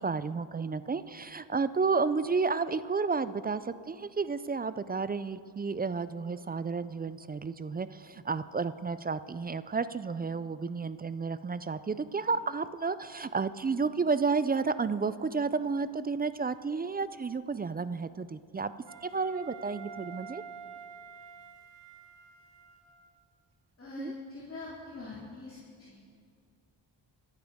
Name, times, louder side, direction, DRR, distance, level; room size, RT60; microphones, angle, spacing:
voice 1, 0.0-18.7 19.0-20.4 24.0-24.1, right 4 dB, 20° right, 14 dB, 0.3 m, -31 dB
Wind instrument woodwind instrument, 18.8-23.1, right 6 dB, 65° right, 1.3 m, -48 dB
voice 2, 23.8-26.0, left 3 dB, 25° left, -6 dB, 2.6 m, -43 dB
24.0 x 9.1 x 3.6 m, 2.3 s
cardioid pair, 70°, 47 cm